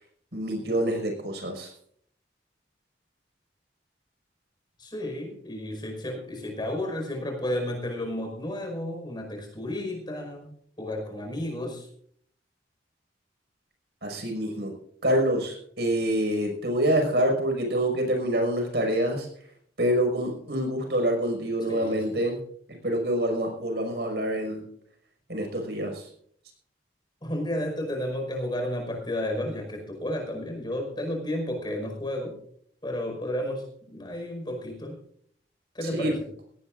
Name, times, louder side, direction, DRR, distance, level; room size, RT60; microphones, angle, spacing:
voice 1, 0.3-1.7 14.0-14.7 15.0-19.3 19.8-22.4 22.8-24.6 25.3-26.1 35.8-36.1, right 1 dB, 65° right, 3 dB, 5.6 m, -26 dB
voice 2, 4.8-11.9 21.7-22.2 27.2-32.4 32.8-35.0 35.7-36.3, left 1 dB, 25° left, 2 dB, 5.2 m, -32 dB
18.5 x 18.5 x 2.6 m, 0.63 s
head